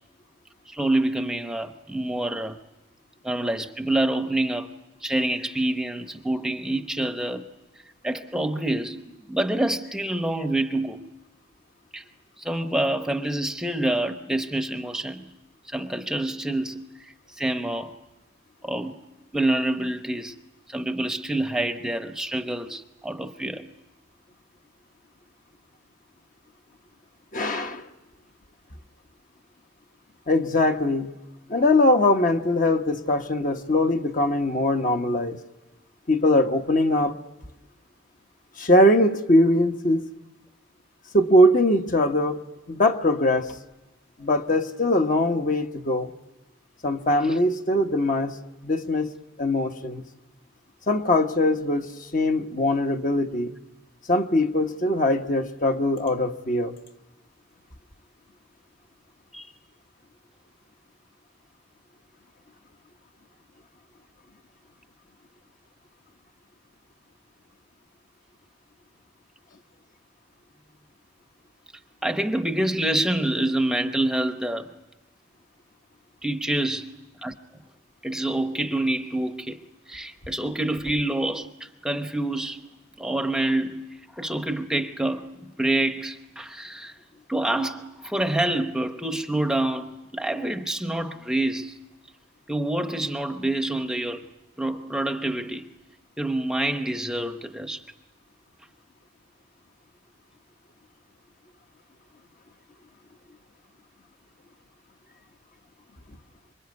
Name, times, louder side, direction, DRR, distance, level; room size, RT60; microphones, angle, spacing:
voice 1, 0.7-2.6 3.2-4.7 5.0-7.5 8.0-11.0 11.9-12.0 12.4-15.2 15.7-17.9 18.6-19.0 19.3-20.3 20.7-23.7 59.3-59.5 72.0-74.7 76.2-76.9 77.2-77.3 78.0-79.6 79.9-82.7 83.0-83.8 84.2-87.0 87.3-91.8 92.5-94.2 94.6-95.7 96.2-97.8, right 1 dB, 5° right, 0.9 m, -27 dB
voice 2, 27.3-27.9 30.3-31.1 31.5-35.4 36.1-37.2 38.6-40.0 41.1-42.4 42.7-43.6 44.2-46.1 46.8-48.4 48.6-49.1 49.4-50.0 50.9-53.5 54.1-56.7, left 1 dB, 45° left, 1.2 m, -21 dB
26.5 x 23.5 x 9.5 m
head